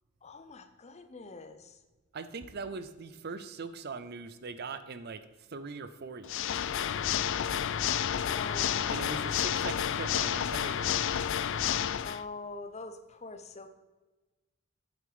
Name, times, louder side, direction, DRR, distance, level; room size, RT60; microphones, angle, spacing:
voice 1, 0.2-1.8 8.1-9.7 12.0-13.7, left 3 dB, 30° left, 8 dB, 0.7 m, -44 dB
voice 2, 2.1-6.6 8.9-11.2, right 4 dB, 45° right, 12 dB, 0.5 m, -41 dB
Water / Mechanisms, 6.2-12.2, left 9 dB, 55° left, 0.3 m, -30 dB
8.6 x 7.5 x 5.0 m, 1.2 s
head